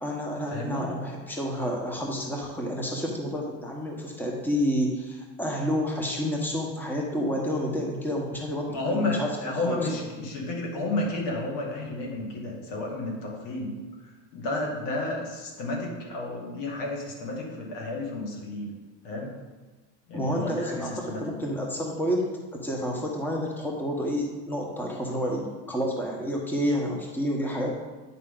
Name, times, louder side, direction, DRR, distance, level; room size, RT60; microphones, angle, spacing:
voice 1, 0.0-9.9 20.1-27.7, equal, 5° left, -1 dB, 1.2 m, -29 dB
voice 2, 0.5-0.9 8.7-13.7 14.3-18.7 19.0-19.3 20.1-21.2, left 2 dB, 75° left, -2 dB, 2.4 m, -31 dB
8.9 x 5.6 x 3.9 m, 1.3 s
cardioid pair, 120°, 31 cm